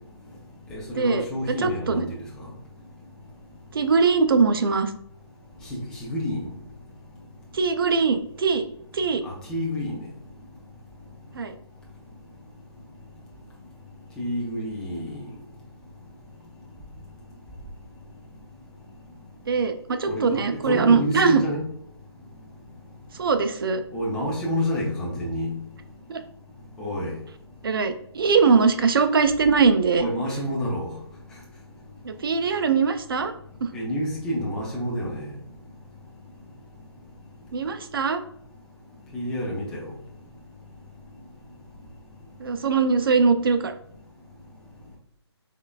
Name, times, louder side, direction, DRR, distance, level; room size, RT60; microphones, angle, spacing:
voice 1, 0.7-2.2 5.6-6.5 9.2-10.0 14.2-15.3 20.1-21.7 23.9-25.5 26.8-27.2 30.0-30.9 33.7-35.3 39.1-39.9, equal, 5° left, -4 dB, 0.4 m, -29 dB
voice 2, 1.6-2.1 3.7-4.9 7.5-8.6 8.9-9.2 11.3-11.6 19.5-21.4 23.2-23.8 26.1-26.2 27.6-30.1 32.0-33.3 33.6-33.7 37.5-38.2 42.4-43.7, right 5 dB, 55° right, 9 dB, 0.4 m, -21 dB
3.7 x 3.3 x 2.2 m, 0.71 s
figure-of-eight pair, 155°, 14 cm